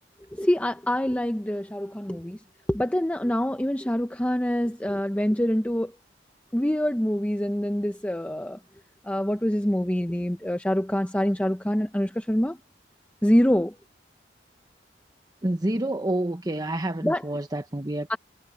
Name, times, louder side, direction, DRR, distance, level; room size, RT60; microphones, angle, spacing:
voice 1, 0.4-2.4 2.7-5.9 6.5-8.6 9.1-12.6 13.2-13.7 17.0-17.2 18.1-18.2, equal, 10° left, 0.7 m, -25 dB
voice 2, 15.4-18.2, right 1 dB, 20° right, 1.0 m, -28 dB
head